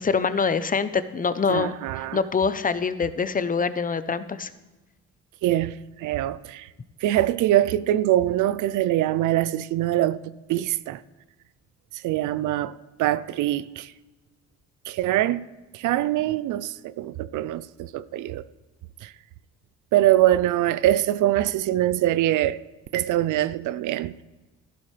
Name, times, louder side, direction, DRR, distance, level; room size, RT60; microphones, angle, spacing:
voice 1, 0.0-1.7 2.1-4.5, left 5 dB, 30° left, 0.7 m, -24 dB
voice 2, 1.5-2.2 5.4-6.7 7.0-11.0 11.9-13.9 14.9-15.4 15.7-18.4 19.0-19.1 19.9-22.6 22.9-24.1, right 13 dB, 80° right, 0.5 m, -23 dB
13.5 x 12.0 x 3.3 m
cardioid pair, 90°, 30 cm